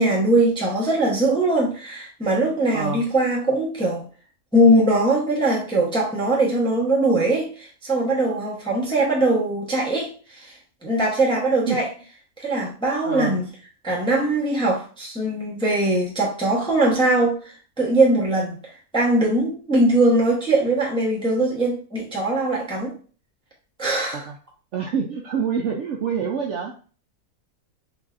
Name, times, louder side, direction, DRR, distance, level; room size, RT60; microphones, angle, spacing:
voice 1, 0.0-4.1 4.5-10.5 10.8-11.9 12.4-13.5 13.8-18.6 18.9-22.9 23.8-24.2, right 1 dB, 5° left, -4 dB, 0.5 m, -21 dB
voice 2, 2.7-3.0 11.7-11.8 13.0-13.4 24.3-24.4 24.7-26.9, right 6 dB, 70° right, 0 dB, 0.7 m, -26 dB
3.9 x 2.6 x 2.4 m, 0.40 s
omnidirectional pair, 1.6 m